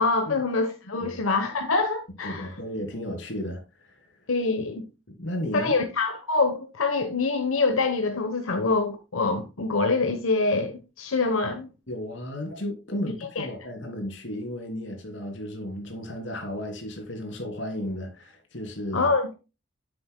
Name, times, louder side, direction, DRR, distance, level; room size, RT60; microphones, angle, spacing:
voice 1, 0.0-2.5 4.3-4.8 5.5-11.7 13.4-13.5 18.9-19.3, left 3 dB, 90° left, 1.0 m, -25 dB
voice 2, 2.2-4.1 5.1-5.7 11.9-19.1, left 1 dB, 65° left, 2.7 m, -34 dB
10.5 x 7.7 x 2.2 m
head